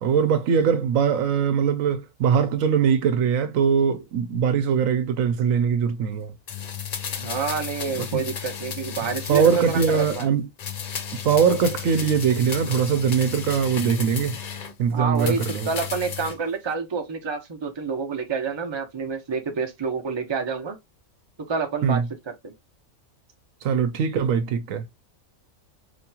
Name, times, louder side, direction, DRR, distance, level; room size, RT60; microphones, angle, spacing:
voice 1, 0.0-6.3 8.0-8.2 9.3-10.5 11.2-14.4 14.8-15.7 21.8-22.1 23.6-24.8, right 7 dB, 80° right, 1.0 m, -22 dB
sound 1, 6.5-10.3 10.6-14.7 15.1-16.4 16.7-16.8, left 7 dB, 90° left, 0.3 m, -33 dB
voice 2, 7.1-10.3 14.9-20.8 21.5-22.0 22.4-22.5, right 5 dB, 25° right, 0.7 m, -28 dB
4.8 x 2.9 x 2.2 m
omnidirectional pair, 1.4 m